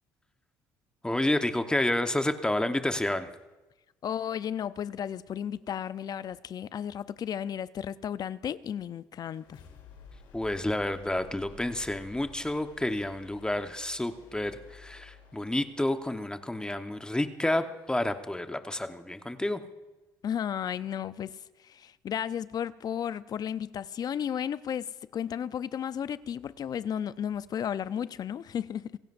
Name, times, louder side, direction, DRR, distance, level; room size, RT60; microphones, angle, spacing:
voice 1, 1.0-3.3 10.3-19.6, left 1 dB, 10° left, 1.2 m, -30 dB
voice 2, 4.0-9.6 20.2-29.0, left 9 dB, 50° left, 0.6 m, -34 dB
sound 1, 9.2-19.0, left 4 dB, 65° left, 3.3 m, -54 dB
26.0 x 16.0 x 2.7 m
hypercardioid pair, 65°, 9 cm